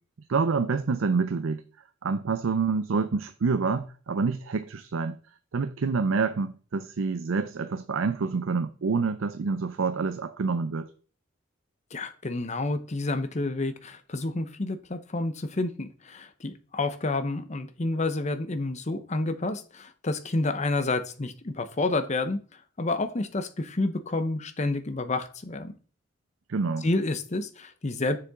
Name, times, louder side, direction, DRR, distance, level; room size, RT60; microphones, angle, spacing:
voice 1, 0.3-1.6 2.0-5.2 5.5-10.9 26.5-26.9, right 4 dB, 90° right, 0.5 m, -27 dB
voice 2, 11.9-22.4 22.8-25.7 26.8-28.2, left 2 dB, 35° left, 0.8 m, -29 dB
6.8 x 6.8 x 3.6 m
head